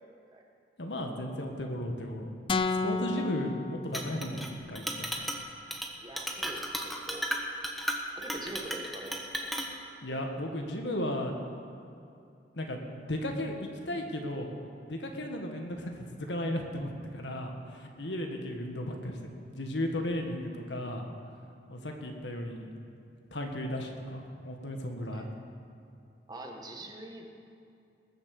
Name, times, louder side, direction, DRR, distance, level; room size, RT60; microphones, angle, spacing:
voice 1, 0.8-2.3 2.8-5.1 10.0-11.3 12.5-12.8 13.1-14.5 14.8-21.1 21.7-22.7 23.3-25.2, left 1 dB, 85° left, 3 dB, 1.7 m, -35 dB
sound 1, 2.5-4.6, left 4 dB, 30° left, 0.4 m, -32 dB
Chink clink, 3.9-4.5 4.8-5.4 5.7-5.9 6.2-9.7, equal, ahead, 1.3 m, -34 dB
voice 2, 6.0-7.3 8.1-9.5 25.1-25.3 26.3-27.2, right 1 dB, 25° right, 1 dB, 1.5 m, -44 dB
21.0 x 7.3 x 6.6 m, 2.6 s
head